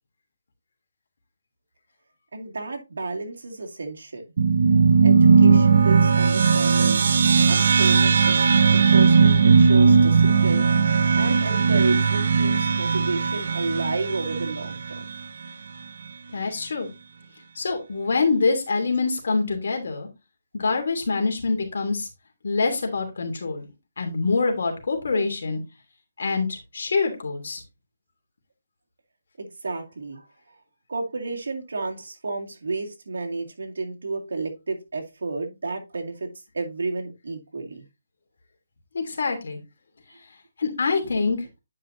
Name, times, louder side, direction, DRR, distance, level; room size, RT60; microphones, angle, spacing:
voice 1, 2.3-4.2 5.0-7.2 7.5-10.7 11.2-15.0 29.4-30.2 30.9-36.3 36.5-37.8, right 3 dB, 80° right, 2 dB, 2.1 m, -31 dB
sound 1, 4.4-15.1, right 5 dB, 55° right, 0.6 m, -18 dB
voice 2, 16.3-16.9 17.5-20.1 20.5-22.1 22.4-23.7 24.0-25.6 26.2-27.6 38.9-39.6 40.6-41.4, left 4 dB, 65° left, 3 dB, 2.8 m, -25 dB
9.8 x 5.5 x 2.6 m, 0.25 s
hypercardioid pair, 165°, 0 cm